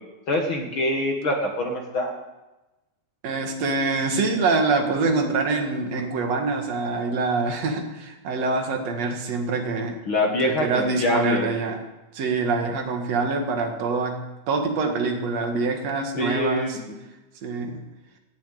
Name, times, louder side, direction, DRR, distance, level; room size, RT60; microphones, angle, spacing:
voice 1, 0.3-2.1 10.1-11.5 16.2-16.8, left 1 dB, 55° left, 2 dB, 1.5 m, -24 dB
voice 2, 3.2-10.0 10.4-11.8 12.1-16.8 17.4-17.8, right 3 dB, 55° right, 4 dB, 2.5 m, -25 dB
17.0 x 7.2 x 9.2 m, 1.1 s
omnidirectional pair, 4.1 m